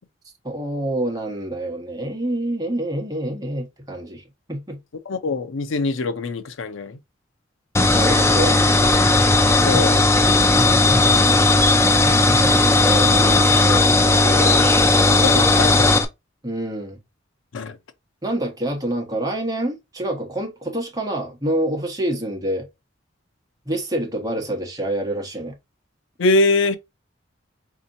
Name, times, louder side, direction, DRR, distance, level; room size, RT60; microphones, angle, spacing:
voice 1, 0.4-4.2 4.5-4.8 7.9-8.6 12.0-14.7 16.4-17.0 18.2-22.7 23.6-25.6, right 1 dB, 20° right, 1.1 m, -27 dB
voice 2, 5.1-7.0 9.6-10.1 15.1-15.9 17.5-17.8 26.2-26.8, left 2 dB, 80° left, 0.5 m, -23 dB
sound 1, 7.7-16.0, left 2 dB, 15° left, 0.4 m, -16 dB
4.2 x 2.8 x 2.6 m
head